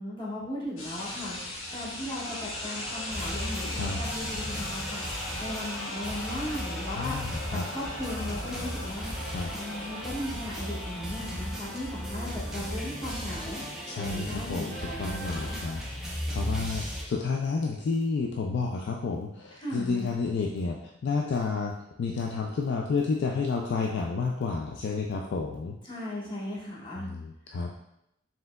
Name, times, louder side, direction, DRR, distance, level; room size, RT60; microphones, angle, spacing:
voice 1, 0.0-15.6 19.6-20.1 25.9-27.1, left 1 dB, 20° left, -8 dB, 1.2 m, -37 dB
sound 1, 0.8-12.8, left 1 dB, 70° left, 1.1 m, -39 dB
sound 2, 3.1-17.0, equal, ahead, 0.7 m, -36 dB
voice 2, 3.6-4.0 7.0-7.7 9.2-9.5 13.9-25.8 27.0-27.7, left 4 dB, 55° left, 0 dB, 0.3 m, -31 dB
sound 3, 5.7-16.0, right 1 dB, 40° right, 1.2 m, -46 dB
4.3 x 3.7 x 2.2 m, 0.83 s
head